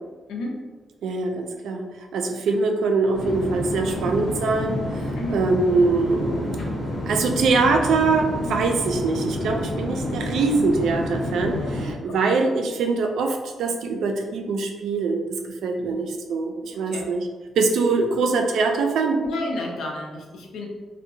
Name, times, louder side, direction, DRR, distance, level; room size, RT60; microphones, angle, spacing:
voice 1, 1.0-1.9 2.1-4.8 5.3-6.6 7.1-17.3 17.6-19.2, right 3 dB, 85° right, 3 dB, 0.3 m, -23 dB
sound 1, 3.1-11.9, left 1 dB, 40° left, 1.0 m, -29 dB
voice 2, 19.2-20.7, left 2 dB, 90° left, 0 dB, 0.5 m, -31 dB
2.7 x 2.1 x 2.6 m, 1.3 s
wide cardioid pair, 175°, 0 cm